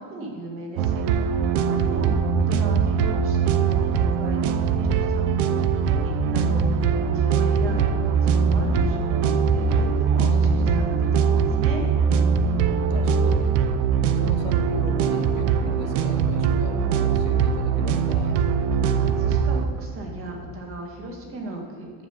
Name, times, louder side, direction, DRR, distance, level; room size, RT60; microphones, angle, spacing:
voice 1, 0.0-5.7 6.0-11.9 19.0-22.1, right 2 dB, 35° right, 1 dB, 2.0 m, -37 dB
sound 1, 0.8-19.7, right 6 dB, 60° right, 0.7 m, -22 dB
sound 2, 1.1-5.4 5.9-6.0, right 1 dB, 10° right, 0.4 m, -32 dB
voice 2, 12.5-13.7 14.1-18.3, left 4 dB, 40° left, 4 dB, 1.3 m, -38 dB
10.5 x 7.3 x 7.1 m, 2.3 s
cardioid pair, 180°, 40 cm